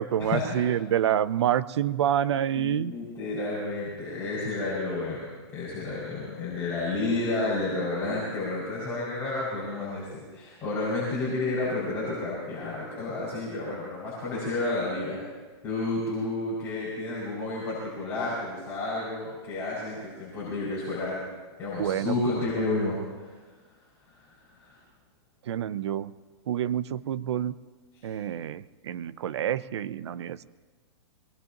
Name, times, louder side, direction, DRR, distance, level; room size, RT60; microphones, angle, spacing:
voice 1, 0.0-2.9 21.8-22.2 25.4-26.1 26.5-27.6 28.0-30.4, right 10 dB, 70° right, 15 dB, 0.7 m, -27 dB
voice 2, 2.5-15.2 15.6-21.2 21.6-23.3 24.1-24.2 24.5-24.8, left 2 dB, 15° left, -9 dB, 5.9 m, -31 dB
23.5 x 20.5 x 3.0 m, 1.4 s
hypercardioid pair, 165°, 15 cm